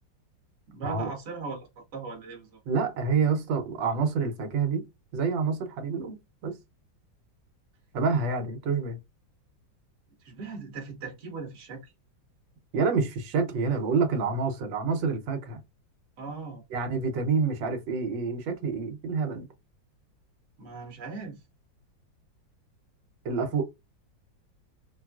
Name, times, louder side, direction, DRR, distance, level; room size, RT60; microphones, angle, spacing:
voice 1, 0.7-1.6 1.9-2.6 10.2-11.9 16.2-16.6 20.6-21.4, right 4 dB, 45° right, 1.3 m, -39 dB
voice 2, 2.7-4.8 5.1-6.6 7.9-9.0 12.7-15.6 16.7-19.5 23.2-23.6, right 5 dB, 80° right, 1.5 m, -27 dB
4.3 x 2.3 x 2.3 m
omnidirectional pair, 2.0 m